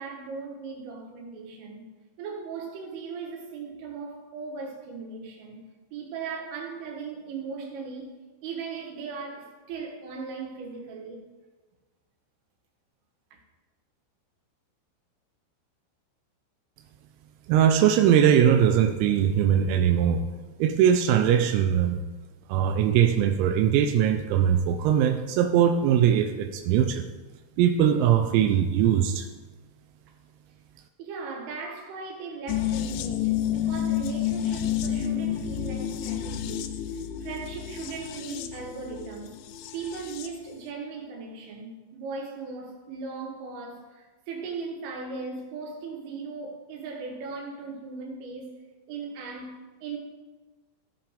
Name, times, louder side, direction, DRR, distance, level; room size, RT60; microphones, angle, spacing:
voice 1, 0.0-1.9 2.2-5.6 5.9-11.3 13.3-13.4 31.0-39.4 39.7-48.6 48.9-50.0, right 4 dB, 75° right, 4.0 m, -38 dB
voice 2, 17.5-20.3 20.6-22.0 22.5-27.1 27.6-29.3, right 9 dB, 90° right, 3.4 m, -21 dB
sound 1, 32.5-40.4 40.7-40.8, left 10 dB, 85° left, 2.6 m, -30 dB
15.5 x 8.0 x 3.4 m
omnidirectional pair, 6.0 m